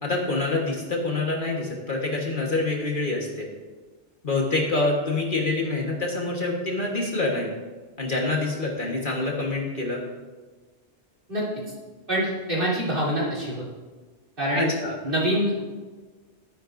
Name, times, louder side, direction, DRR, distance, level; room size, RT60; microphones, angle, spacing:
voice 1, 0.0-3.5 4.2-7.5 8.0-10.0 14.5-15.0, left 2 dB, 45° left, -1 dB, 1.5 m, -26 dB
voice 2, 12.1-13.6 14.4-14.7 15.0-15.6, equal, 50° right, -7 dB, 3.4 m, -25 dB
12.5 x 10.0 x 2.6 m, 1.3 s
omnidirectional pair, 1.2 m